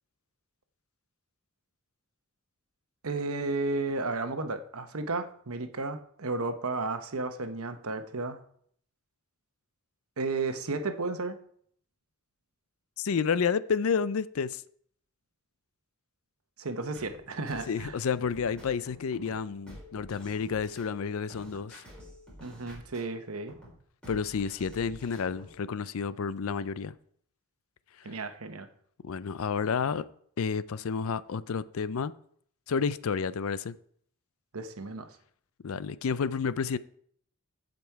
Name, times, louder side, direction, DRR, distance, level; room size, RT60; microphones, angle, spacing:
voice 1, 3.0-8.4 10.2-11.4 16.6-17.9 21.5-21.6 22.4-23.5 28.0-28.7 34.5-35.1, right 3 dB, 80° right, 1.0 m, -33 dB
voice 2, 13.0-14.6 17.7-21.8 24.1-26.9 29.0-30.0 30.4-32.1 32.7-33.7 35.6-36.8, left 6 dB, 75° left, 0.4 m, -30 dB
sound 1, 16.9-25.6, equal, 5° left, 4.1 m, -50 dB
15.0 x 5.3 x 4.6 m
head